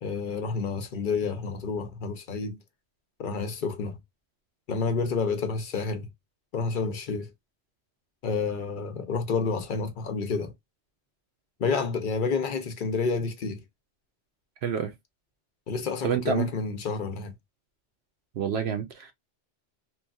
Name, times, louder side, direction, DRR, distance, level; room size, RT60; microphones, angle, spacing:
voice 1, 0.0-2.6 3.2-4.0 4.7-6.1 6.5-7.3 8.2-10.5 11.6-13.6 15.7-17.3, left 4 dB, 50° left, 0.7 m, -29 dB
voice 2, 14.6-14.9 16.0-16.5 18.4-19.1, right 7 dB, 65° right, 0.8 m, -28 dB
3.0 x 2.5 x 2.3 m
omnidirectional pair, 1.2 m